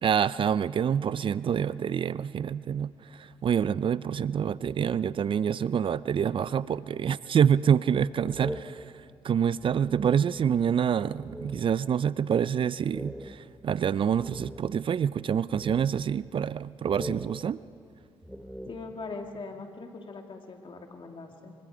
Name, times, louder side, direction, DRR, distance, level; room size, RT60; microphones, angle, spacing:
voice 1, 0.0-17.6, right 8 dB, 50° right, 18 dB, 0.4 m, -27 dB
sound 1, 8.2-10.7 11.1-12.0 12.3-12.4 12.8-15.0 15.5-16.6 16.8-19.2, equal, ahead, 1.1 m, -43 dB
voice 2, 18.7-21.5, left 3 dB, 50° left, 3 dB, 2.8 m, -41 dB
23.5 x 23.0 x 5.1 m, 2.4 s
supercardioid pair, 65°, 11 cm